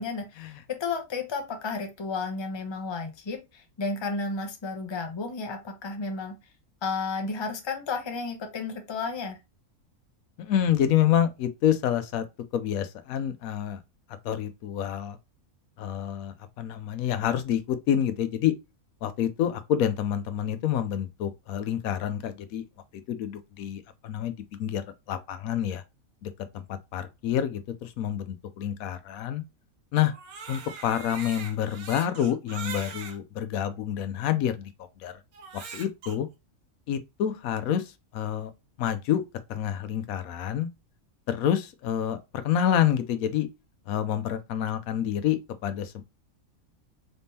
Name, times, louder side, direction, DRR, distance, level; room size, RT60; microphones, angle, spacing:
voice 1, 0.0-6.3 6.8-9.4, left 4 dB, 25° left, 0.6 m, -32 dB
voice 2, 10.4-12.2 12.5-13.8 14.2-15.2 15.8-18.5 19.0-22.6 23.1-24.3 24.6-24.8 25.1-25.8 26.2-26.3 26.7-29.4 29.9-30.1 30.5-34.7 35.0-35.1 35.7-36.3 36.9-38.5 38.8-39.2 39.5-40.7 41.3-42.2 42.4-43.5 43.9-46.0, left 10 dB, 80° left, 1.0 m, -27 dB
Crying sobbing, 30.0-33.2 33.9-34.0 35.3-36.2, right 5 dB, 90° right, 1.4 m, -41 dB
4.1 x 3.5 x 2.7 m
omnidirectional pair, 1.5 m